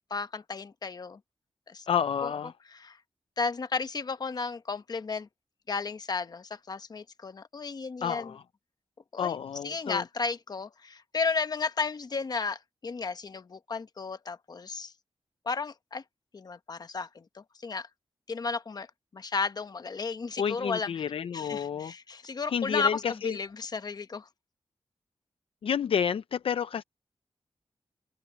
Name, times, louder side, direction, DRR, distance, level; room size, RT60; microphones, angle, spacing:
voice 1, 0.1-1.2 1.7-1.9 2.2-2.3 2.7-3.0 3.4-5.3 5.7-8.3 9.1-9.4 9.6-14.9 15.5-16.0 16.3-17.9 18.3-18.9 19.1-20.9 21.3-24.3, left 4 dB, 45° left, 0.9 m, -33 dB
voice 2, 1.9-2.5 8.0-8.4 9.2-10.0 20.4-21.9 22.5-23.3 25.6-26.8, left 7 dB, 70° left, 0.5 m, -30 dB
wide cardioid pair, 145°, 10 cm